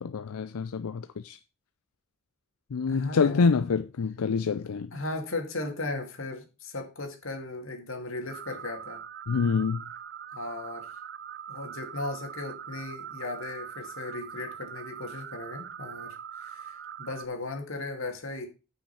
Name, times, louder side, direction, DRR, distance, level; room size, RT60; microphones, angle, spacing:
voice 1, 0.0-1.4 2.7-4.9 9.3-9.9, left 5 dB, 80° left, 0.5 m, -26 dB
voice 2, 2.9-3.4 4.9-9.0 10.3-10.9 11.5-18.5, left 2 dB, 65° left, 2.3 m, -37 dB
sound 1, 8.3-17.3, right 8 dB, 50° right, 0.5 m, -42 dB
8.9 x 5.6 x 5.8 m
head